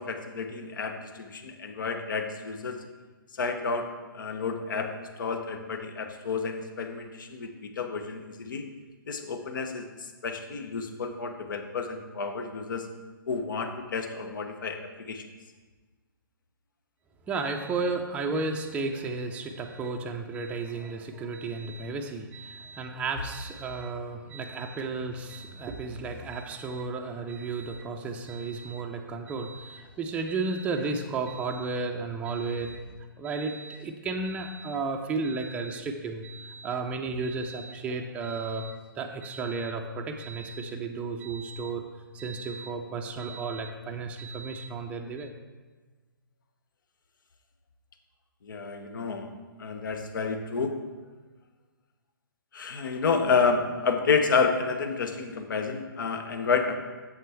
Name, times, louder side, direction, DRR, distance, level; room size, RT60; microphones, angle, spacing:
voice 1, 0.0-2.8 3.4-8.6 9.1-9.9 10.2-12.9 13.3-15.2 48.4-50.8 52.5-56.8, left 5 dB, 65° left, 6 dB, 0.9 m, -30 dB
voice 2, 17.3-41.8 42.1-45.3, right 3 dB, 10° right, 2 dB, 0.5 m, -33 dB
7.4 x 7.1 x 3.4 m, 1.3 s
figure-of-eight pair, 130°, 12 cm